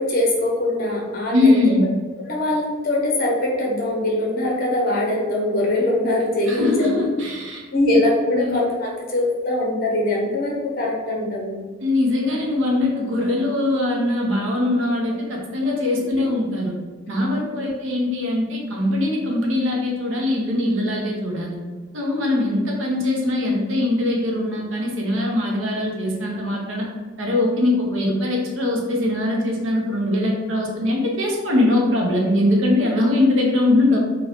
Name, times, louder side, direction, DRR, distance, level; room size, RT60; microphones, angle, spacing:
voice 1, 0.0-1.5 2.3-6.9 7.7-11.6 16.2-16.3 17.5-17.6, left 1 dB, 45° left, -2 dB, 0.7 m, -22 dB
voice 2, 1.3-1.9 6.5-8.0 8.3-8.5 11.8-16.7 17.1-21.6 21.9-26.9 27.2-34.0, left 1 dB, 70° right, -1 dB, 0.7 m, -21 dB
2.3 x 2.2 x 3.5 m, 1.4 s
head